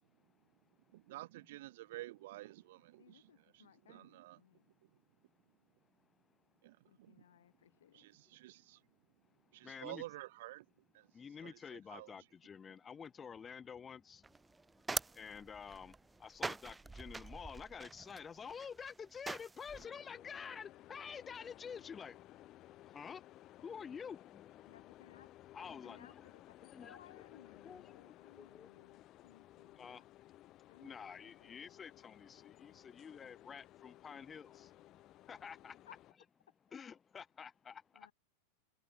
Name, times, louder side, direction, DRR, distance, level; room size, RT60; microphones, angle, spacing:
voice 1, 0.9-4.4 4.8-4.9 6.6-7.2 7.9-8.8 9.5-10.7 10.9-12.1, right 17 dB, 55° right, 3.4 m, -51 dB
voice 2, 3.0-4.7 6.9-8.1 24.7-25.3 25.8-30.1 30.7-31.6 35.9-36.0 36.5-36.6 37.9-38.1, left 10 dB, 60° left, 3.4 m, -62 dB
voice 3, 9.6-10.0 11.1-14.2 15.2-15.9 16.2-22.1 22.9-23.2 23.6-24.6 25.5-26.2 26.7-27.0 27.6-28.7 29.8-30.0 30.8-34.7 35.3-35.8 36.7-37.8, left 6 dB, 20° left, 2.3 m, -49 dB
sound 1, 14.2-19.9, right 3 dB, 10° right, 1.0 m, -44 dB
sound 2, 19.7-36.1, left 15 dB, 35° left, 3.2 m, -59 dB
figure-of-eight pair, 90°, 0 cm